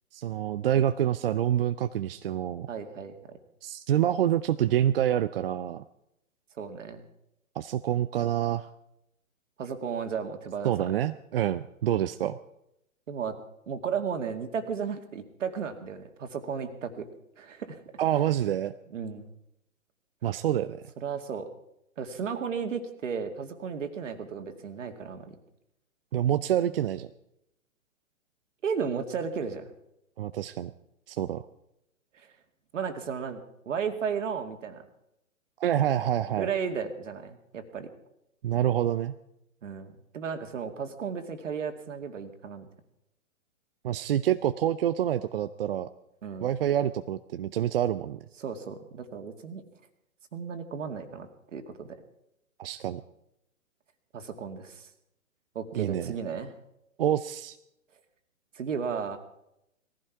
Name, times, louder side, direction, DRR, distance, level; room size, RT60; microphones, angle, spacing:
voice 1, 0.1-2.7 3.6-5.8 7.6-8.7 10.6-12.4 18.0-18.7 20.2-20.8 26.1-27.1 30.2-30.7 31.1-31.4 35.6-36.5 38.4-39.1 43.8-45.9 46.4-48.2 52.6-53.0 55.7-56.1 57.0-57.6, right 11 dB, 45° right, 11 dB, 0.6 m, -27 dB
voice 2, 2.7-3.4 6.6-7.0 9.6-10.9 13.1-13.4 13.7-17.1 17.4-17.8 18.9-19.3 21.0-21.5 22.0-25.4 28.6-29.7 32.2-32.3 32.7-33.4 33.7-34.9 36.3-37.9 39.6-42.7 46.2-46.5 48.4-49.6 50.3-52.0 54.1-54.9 55.6-56.5 58.5-59.2, right 6 dB, 65° right, 7 dB, 2.2 m, -34 dB
20.0 x 15.0 x 4.7 m, 0.81 s
figure-of-eight pair, 120°, 41 cm